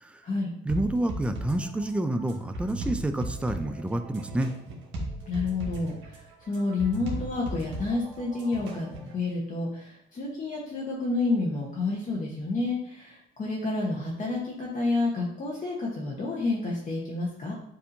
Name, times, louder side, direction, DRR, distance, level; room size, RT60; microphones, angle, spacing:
voice 1, 0.7-4.5, right 1 dB, 5° right, 7 dB, 0.3 m, -28 dB
sound 1, 0.7-9.1, right 1 dB, 80° right, 1.2 m, -37 dB
voice 2, 5.3-6.2 6.5-17.5, left 3 dB, 40° left, -3 dB, 0.9 m, -29 dB
6.8 x 2.7 x 2.6 m, 0.74 s
cardioid pair, 90°, 20 cm